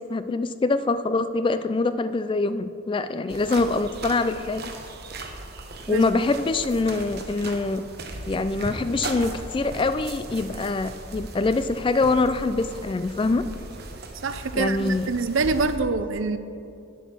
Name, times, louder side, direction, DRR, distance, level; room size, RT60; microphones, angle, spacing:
voice 1, 0.1-4.7 5.9-7.8 8.3-13.4 14.5-15.1, left 3 dB, 25° left, 12 dB, 0.3 m, -24 dB
sound 1, 3.3-15.8, right 2 dB, 50° right, 1.1 m, -38 dB
voice 2, 14.2-16.4, right 4 dB, 70° right, 11 dB, 0.6 m, -25 dB
9.2 x 8.0 x 6.1 m, 2.5 s
head